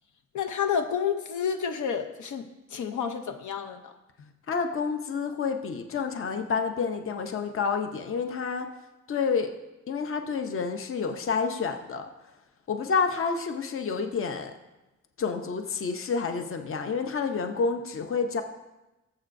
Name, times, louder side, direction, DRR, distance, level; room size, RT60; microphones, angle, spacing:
voice 1, 0.3-2.5 2.7-3.9, left 7 dB, 85° left, 7 dB, 0.7 m, -29 dB
voice 2, 4.2-8.7 9.1-9.5 9.9-12.1 12.7-14.5 15.2-18.4, left 5 dB, 45° left, 6 dB, 0.7 m, -29 dB
18.0 x 7.4 x 2.6 m, 1.0 s
wide cardioid pair, 165°, 29 cm